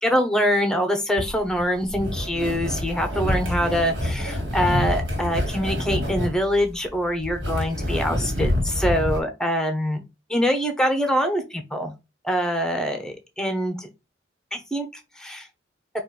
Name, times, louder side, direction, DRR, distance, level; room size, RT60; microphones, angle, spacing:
voice 1, 0.0-10.0 10.3-11.9 12.2-13.9 14.5-14.9 15.2-15.5, equal, 5° left, 5 dB, 0.8 m, -24 dB
sound 1, 1.2-9.2, left 1 dB, 65° right, 1.9 m, -27 dB
4.3 x 2.5 x 4.8 m, 0.25 s
head